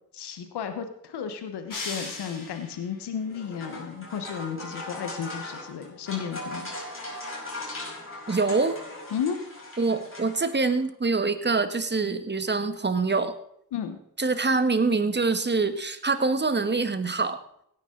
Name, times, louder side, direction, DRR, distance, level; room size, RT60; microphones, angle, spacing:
voice 1, 0.1-6.7 9.1-9.4 13.7-14.0, left 7 dB, 90° left, 8 dB, 1.3 m, -33 dB
sound 1, 1.7-3.0, left 3 dB, 55° left, 3.4 m, -37 dB
sound 2, 3.2-10.8, left 2 dB, 35° left, 5.0 m, -39 dB
voice 2, 8.3-8.8 9.8-13.4 14.2-17.4, right 3 dB, 25° right, 10 dB, 1.4 m, -25 dB
17.0 x 9.6 x 3.9 m, 0.75 s
cardioid pair, 50°, 39 cm